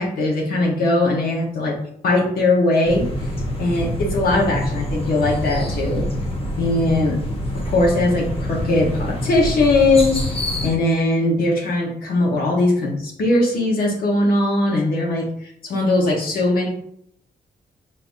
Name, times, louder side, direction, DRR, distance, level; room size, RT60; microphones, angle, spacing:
voice 1, 0.0-1.8 2.0-3.3 3.6-6.1 6.6-7.2 7.5-10.2 10.6-16.7, left 2 dB, 70° left, -1 dB, 1.3 m, -20 dB
sound 1, 2.8-10.7, left 1 dB, 35° left, 0.9 m, -26 dB
5.4 x 2.9 x 2.7 m, 0.71 s
wide cardioid pair, 160°, 16 cm